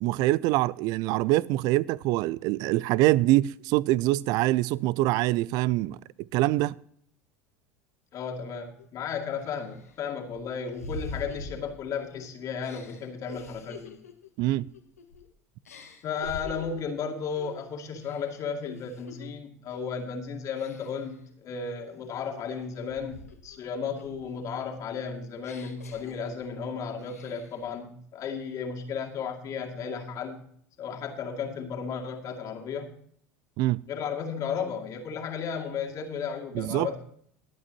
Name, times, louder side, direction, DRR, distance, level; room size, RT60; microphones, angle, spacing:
voice 1, 0.0-6.0 6.3-6.7 14.4-14.7 33.6-33.8 36.5-37.0, right 17 dB, 55° right, 0.4 m, -24 dB
voice 2, 8.1-14.0 16.0-30.4 30.8-33.0 33.9-37.0, left 6 dB, 45° left, 2.4 m, -34 dB
sound 1, 8.8-8.9 9.4-12.1 12.6-15.3 15.6-16.9 17.3-17.6 18.0-19.3 19.7-20.0 20.6-21.1 21.7-23.6 23.9-26.6 27.0-27.6, left 3 dB, 85° left, 1.4 m, -45 dB
22.0 x 8.5 x 2.9 m
hypercardioid pair, 75°, 8 cm